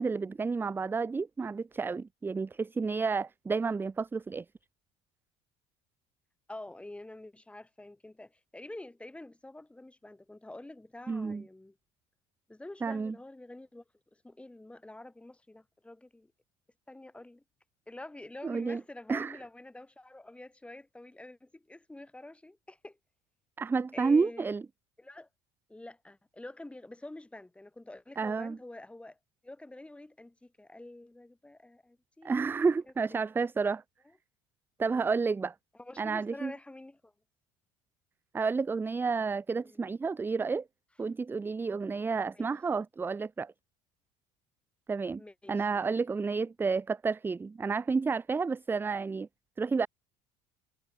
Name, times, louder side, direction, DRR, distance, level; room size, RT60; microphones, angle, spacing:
voice 1, 0.0-4.4 11.1-11.4 12.8-13.1 18.4-18.8 19.1-19.4 23.6-24.6 28.2-28.6 32.2-33.8 34.8-35.5 36.0-36.5 38.3-40.6 41.0-43.5 44.9-45.2 45.5-49.3 49.6-49.9, right 4 dB, 15° right, 0.5 m, -30 dB
voice 2, 6.5-11.8 12.5-13.8 14.1-16.3 16.9-17.4 17.9-23.0 23.9-24.5 25.0-25.3 25.7-29.2 29.4-32.7 35.7-37.1 39.6-39.8 42.3-42.5 45.2-46.0, left 2 dB, 10° left, 4.9 m, -48 dB
supercardioid pair, 95°, 13 cm